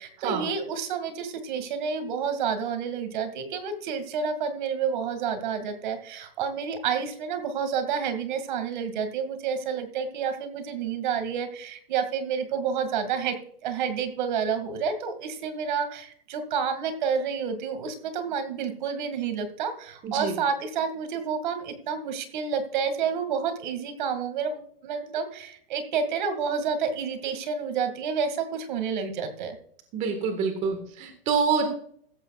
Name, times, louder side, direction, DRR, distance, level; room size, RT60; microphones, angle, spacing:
voice 1, 0.0-13.4 13.6-29.6, right 6 dB, 50° right, 9 dB, 2.3 m, -29 dB
voice 2, 20.0-20.4 29.9-31.6, right 5 dB, 25° right, 6 dB, 1.7 m, -26 dB
15.5 x 13.5 x 2.4 m, 0.62 s
hypercardioid pair, 155°, 30 cm